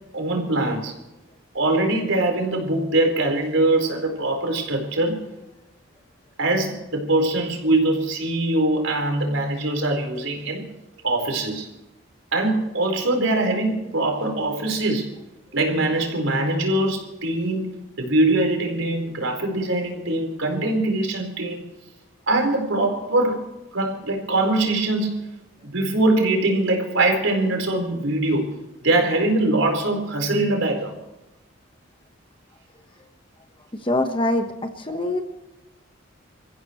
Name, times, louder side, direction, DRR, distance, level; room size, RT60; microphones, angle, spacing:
voice 1, 0.1-0.9 1.5-5.3 6.4-10.7 11.0-11.7 12.3-15.1 15.5-21.7 22.3-23.4 23.7-25.3 25.6-28.6 28.8-31.0, right 2 dB, 80° right, 2 dB, 4.4 m, -22 dB
voice 2, 33.8-35.2, left 1 dB, 25° left, 6 dB, 1.3 m, -24 dB
27.5 x 15.0 x 3.2 m, 0.96 s
head